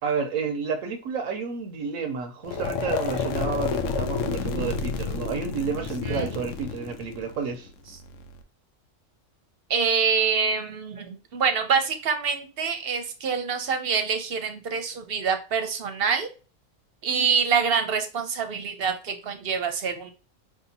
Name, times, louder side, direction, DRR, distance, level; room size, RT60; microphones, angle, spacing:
voice 1, 0.0-7.7, right 5 dB, 85° right, 1.1 m, -30 dB
sound 1, 2.4-8.4, left 5 dB, 80° left, 1.0 m, -30 dB
voice 2, 9.7-16.3 17.0-20.1, right 6 dB, 55° right, 0.8 m, -26 dB
4.8 x 2.8 x 2.7 m
omnidirectional pair, 1.4 m